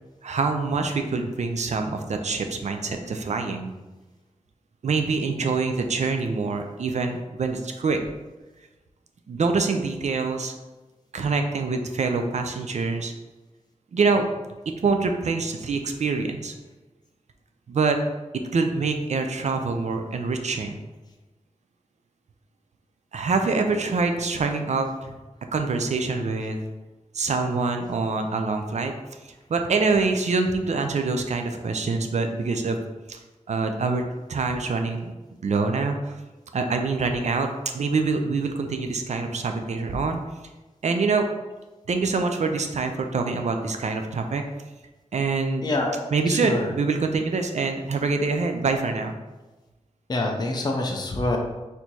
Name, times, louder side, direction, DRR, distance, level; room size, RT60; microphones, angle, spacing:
voice 1, 0.2-3.7 4.8-8.0 9.3-10.5 11.1-13.1 13.9-14.3 14.8-16.5 17.7-18.0 18.5-20.8 23.1-25.1 25.5-26.6 27.1-28.9 29.2-32.8 33.1-33.2 33.5-34.0 34.3-35.1 35.4-36.1 36.5-37.5 37.7-40.2 40.8-41.3 41.9-44.4 45.1-45.6 46.1-49.1, right 4 dB, 70° right, 5 dB, 0.5 m, -25 dB
voice 2, 45.6-46.7 50.1-51.4, left 2 dB, 35° left, 1 dB, 0.6 m, -26 dB
4.3 x 2.7 x 4.5 m, 1.1 s
wide cardioid pair, 105°, 12 cm